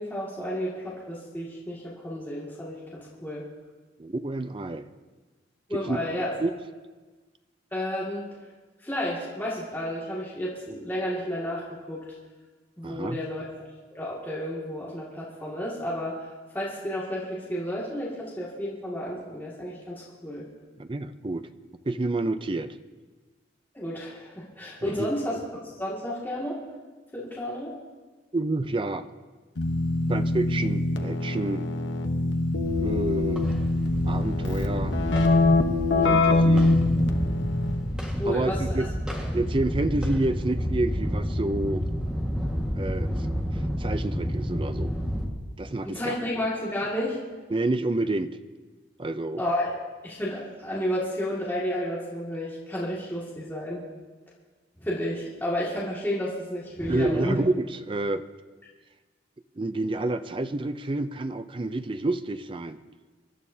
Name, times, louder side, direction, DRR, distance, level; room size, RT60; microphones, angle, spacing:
voice 1, 0.0-3.4 5.7-6.3 7.7-8.3 8.8-12.1 12.8-16.2 16.5-20.4 23.7-25.4 25.7-26.6 27.1-27.7 35.9-36.2 38.2-38.9 45.8-47.2 49.4-53.9 54.8-57.4, left 1 dB, 10° left, -7 dB, 2.1 m, -31 dB
voice 2, 4.0-4.9 5.7-6.1 6.4-6.5 12.8-13.2 20.8-21.5 21.9-22.8 24.8-25.1 28.3-29.1 30.1-31.6 32.8-33.4 34.1-35.0 36.0-36.7 38.3-38.9 39.3-41.8 42.3-42.4 42.8-45.0 45.6-46.2 47.5-48.4 49.0-49.4 56.9-58.2 59.6-62.8, right 2 dB, 25° right, 11 dB, 0.5 m, -29 dB
Keyboard (musical), 29.6-38.0, left 2 dB, 75° left, 1.0 m, -24 dB
sound 1, 32.6-45.2, equal, 5° right, 1.6 m, -30 dB
25.5 x 12.0 x 2.8 m, 1.3 s
head